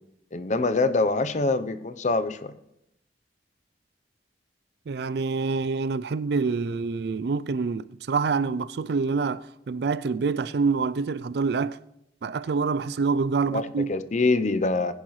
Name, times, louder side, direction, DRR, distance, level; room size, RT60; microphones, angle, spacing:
voice 1, 0.3-2.5 13.5-14.9, left 3 dB, 40° left, 0.7 m, -25 dB
voice 2, 4.9-11.8 12.2-13.9, right 4 dB, 60° right, 0.4 m, -26 dB
19.5 x 10.5 x 3.2 m
head